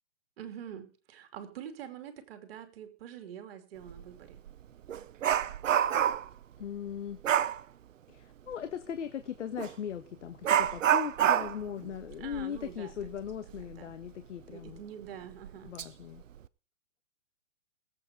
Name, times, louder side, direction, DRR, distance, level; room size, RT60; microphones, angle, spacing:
voice 1, 0.4-4.4 12.2-12.9 13.6-14.0 14.5-15.7, right 9 dB, 50° right, 7 dB, 2.9 m, -45 dB
Dog, 3.9-4.0 4.5-6.4 7.2-7.6 9.6-9.7 10.4-13.7 14.0-14.1 14.7-14.8 15.4-15.8 16.2-16.5, right 10 dB, 85° right, 0.8 m, -28 dB
voice 2, 6.6-7.2 8.1-14.8 15.6-16.2, left 9 dB, 70° left, 8 dB, 1.4 m, -39 dB
18.5 x 8.4 x 5.2 m, 0.40 s
hypercardioid pair, 145°, 38 cm